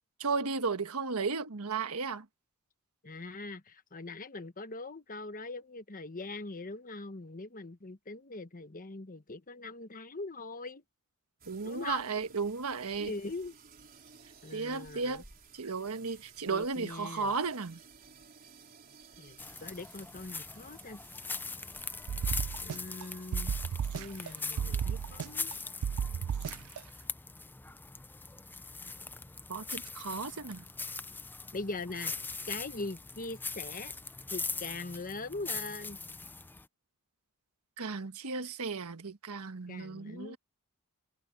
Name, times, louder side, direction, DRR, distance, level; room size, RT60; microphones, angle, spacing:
voice 1, 0.2-2.2 11.5-13.1 14.5-15.2 15.5-17.8 29.5-30.6 37.8-40.4, right 4 dB, 85° right, 1.3 m, -34 dB
voice 2, 3.0-10.8 11.6-12.1 13.0-13.5 14.4-15.2 16.5-17.3 19.2-21.0 22.6-23.5 23.9-25.5 31.5-32.1 32.5-33.9 34.3-36.0 39.7-40.4, left 3 dB, 40° left, 1.3 m, -41 dB
sound 1, 11.4-25.6, right 5 dB, 40° right, 3.8 m, -58 dB
sound 2, 19.4-36.7, left 4 dB, 10° left, 0.5 m, -41 dB
sound 3, 22.1-23.0 23.3-24.3 24.6-25.5 25.8-26.8, right 7 dB, 70° right, 0.3 m, -33 dB
head